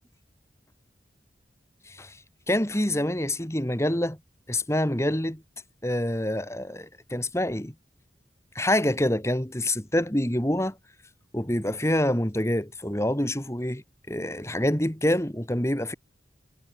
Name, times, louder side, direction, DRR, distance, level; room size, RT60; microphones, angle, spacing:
voice 1, 2.5-4.2 4.5-5.4 5.8-7.7 8.5-10.7 11.3-13.8 14.1-15.9, left 1 dB, 15° left, 2.6 m, -26 dB
head